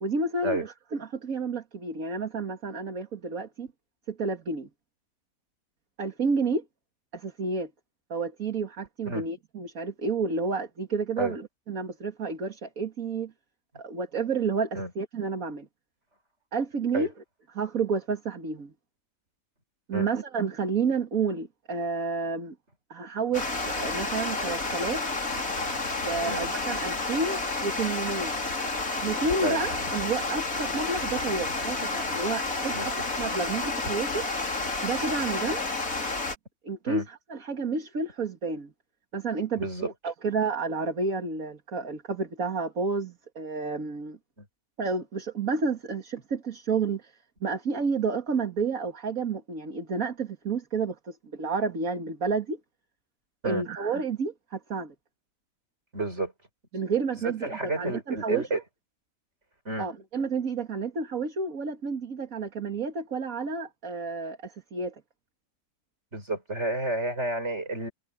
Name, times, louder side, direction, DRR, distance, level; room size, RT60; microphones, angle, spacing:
voice 1, 0.0-3.7 4.1-4.7 6.0-6.6 7.1-7.7 8.1-13.3 13.8-15.7 16.5-17.1 17.5-18.7 19.9-22.6 22.9-25.0 26.0-28.4 29.0-34.2 34.8-35.6 36.6-38.7 39.1-44.2 44.8-47.1 47.4-52.6 53.4-54.9 56.7-58.6 59.8-65.0, right 4 dB, 70° right, 2.5 m, -30 dB
Water, 23.3-36.3, left 3 dB, 70° left, 4.0 m, -30 dB
voice 2, 39.6-39.9 44.4-44.5 53.4-53.6 55.9-56.3 57.2-58.6 59.6-59.9 66.1-67.9, right 2 dB, 50° right, 6.6 m, -30 dB
omnidirectional pair, 1.5 m